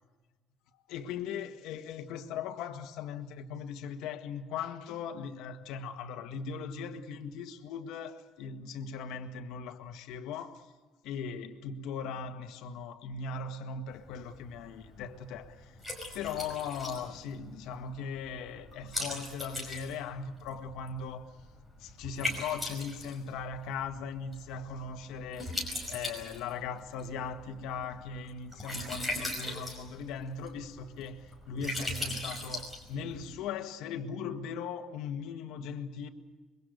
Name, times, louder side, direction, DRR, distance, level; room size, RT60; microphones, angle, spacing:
voice 1, 0.9-10.7 11.0-15.7 16.1-21.3 21.8-25.6 25.9-36.1, left 6 dB, 70° left, 1.7 m, -39 dB
Liquid, 13.9-33.3, left 1 dB, 5° right, 5.5 m, -41 dB
26.0 x 23.5 x 6.6 m
cardioid pair, 175°, 0 cm